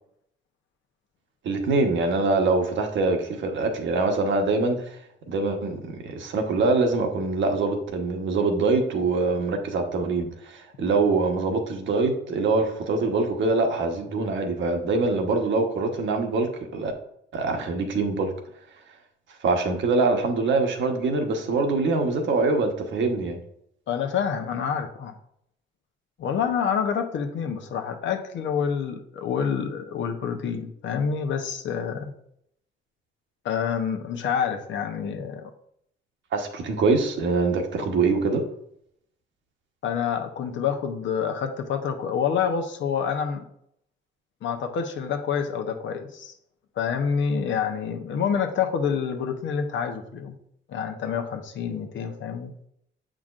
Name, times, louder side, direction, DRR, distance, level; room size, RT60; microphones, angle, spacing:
voice 1, 1.4-4.9 5.3-16.9 17.3-18.3 19.4-23.4 36.3-38.5, right 3 dB, 70° right, 4 dB, 1.2 m, -24 dB
voice 2, 23.9-25.1 26.2-32.1 33.4-35.5 39.8-43.4 44.4-46.3 46.8-50.4 50.7-52.5, left 7 dB, 70° left, 6 dB, 0.9 m, -27 dB
7.4 x 5.0 x 2.5 m, 0.73 s
cardioid pair, 90°, 20 cm